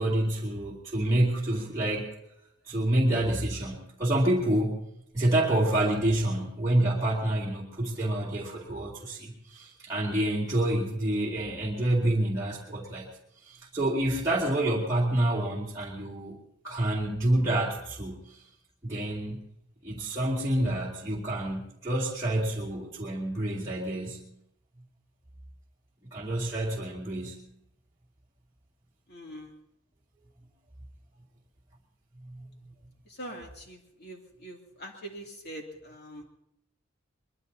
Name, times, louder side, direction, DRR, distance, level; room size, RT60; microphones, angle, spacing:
voice 1, 0.0-2.1 2.7-4.8 5.1-13.1 13.4-16.4 16.6-18.4 18.8-19.4 19.8-24.3 26.1-27.5 32.2-32.5, right 1 dB, 15° right, -7 dB, 2.5 m, -28 dB
voice 2, 29.1-29.5 33.1-36.2, right 1 dB, 55° left, 0 dB, 2.8 m, -43 dB
23.0 x 21.5 x 2.8 m, 0.78 s
head